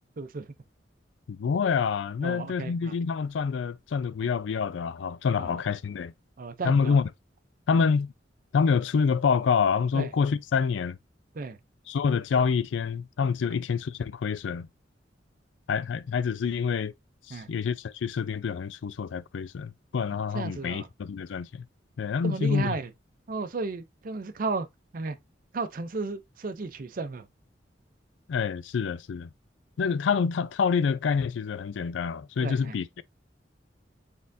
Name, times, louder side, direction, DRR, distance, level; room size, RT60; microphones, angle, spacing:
voice 1, 0.2-0.5 2.2-2.9 5.4-5.6 6.4-7.0 7.7-7.8 9.9-10.1 11.3-11.6 17.3-17.5 20.3-20.9 22.2-22.9 23.3-24.7 24.9-25.2 25.5-27.3 32.4-32.8, right 3 dB, 50° right, 0.5 m, -34 dB
voice 2, 1.3-6.1 6.6-7.1 7.7-8.1 8.5-11.0 11.9-14.7 15.7-16.9 17.3-21.6 22.0-22.8 28.3-29.3 29.8-33.0, left 6 dB, 85° left, 0.4 m, -27 dB
4.2 x 3.6 x 2.6 m
head